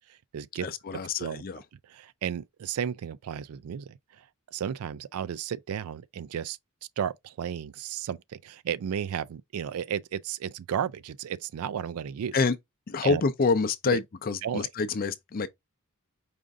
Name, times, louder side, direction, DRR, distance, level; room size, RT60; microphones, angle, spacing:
voice 1, 0.1-0.7 1.2-1.4 1.9-6.6 7.0-12.4 13.0-13.2 13.9-14.0 14.4-14.7, right 8 dB, 80° right, 0.3 m, -33 dB
voice 2, 0.6-1.6 12.3-12.6 12.9-15.5, left 4 dB, 40° left, 0.5 m, -27 dB
5.0 x 2.5 x 3.4 m
head